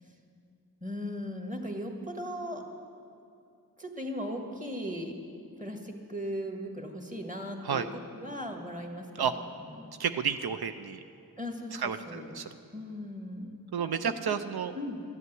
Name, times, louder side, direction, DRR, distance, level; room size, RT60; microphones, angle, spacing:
voice 1, 0.8-2.6 3.8-5.1 5.6-9.9 11.4-12.4 12.7-14.4 14.8-15.0, equal, 20° right, 3 dB, 1.7 m, -38 dB
voice 2, 10.0-11.0 11.8-12.4 13.7-14.7, right 7 dB, 85° right, 9 dB, 0.5 m, -31 dB
13.0 x 8.3 x 9.3 m, 2.6 s
wide cardioid pair, 55°, 37 cm